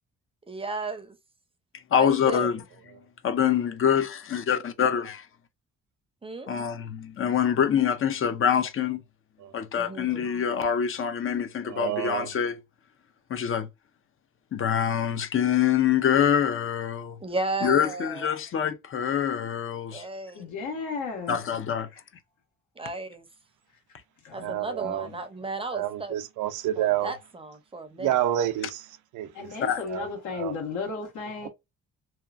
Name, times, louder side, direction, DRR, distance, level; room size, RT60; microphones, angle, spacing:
voice 1, 0.5-1.2 2.0-2.5 6.2-6.5 9.7-10.3 17.2-18.3 19.9-20.5 22.8-23.3 24.3-26.2 26.7-28.2, right 2 dB, 20° right, 0.6 m, -34 dB
voice 2, 1.9-2.6 3.2-5.3 6.5-9.0 9.5-12.6 13.3-13.7 14.5-17.2 17.6-20.0 21.3-21.9 29.6-29.8, left 8 dB, 45° left, 0.6 m, -25 dB
voice 3, 11.7-12.3 24.4-25.1 25.7-27.1 28.0-28.8 29.1-29.5 29.9-30.1 30.3-30.6, right 12 dB, 80° right, 0.5 m, -28 dB
voice 4, 20.3-21.4 24.2-25.1 29.3-31.5, left 4 dB, 80° left, 1.5 m, -35 dB
2.8 x 2.2 x 2.4 m
cardioid pair, 90°, 30 cm